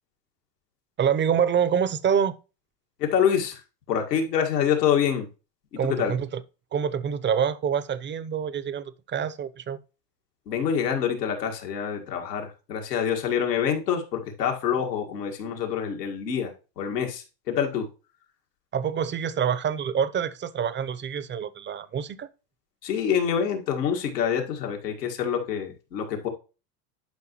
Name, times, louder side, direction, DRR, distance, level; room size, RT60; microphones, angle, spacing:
voice 1, 1.0-2.4 5.8-6.4 6.7-9.8 18.7-22.3, right 7 dB, 25° right, 0.7 m, -26 dB
voice 2, 3.0-3.6 3.9-5.3 5.7-6.1 10.5-17.9 22.8-26.3, left 8 dB, 90° left, 2.1 m, -26 dB
11.5 x 5.4 x 3.1 m
hypercardioid pair, 90°, 47 cm